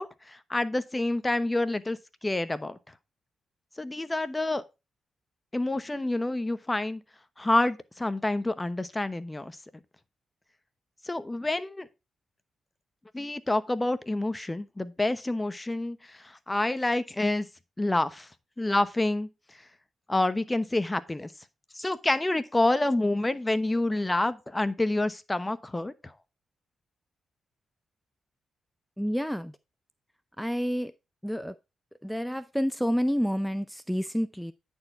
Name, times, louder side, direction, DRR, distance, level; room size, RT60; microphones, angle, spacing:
voice 1, 0.0-2.8 3.8-4.6 5.5-7.0 7.4-9.6 11.1-11.9 13.1-17.5 17.8-18.3 18.6-19.3 20.1-21.3 21.7-26.1, left 2 dB, 20° left, 0.9 m, -28 dB
voice 2, 29.0-29.6 30.4-30.9 31.2-31.6 32.0-34.5, equal, ahead, 0.5 m, -29 dB
9.5 x 4.6 x 4.4 m
supercardioid pair, 45°, 0 cm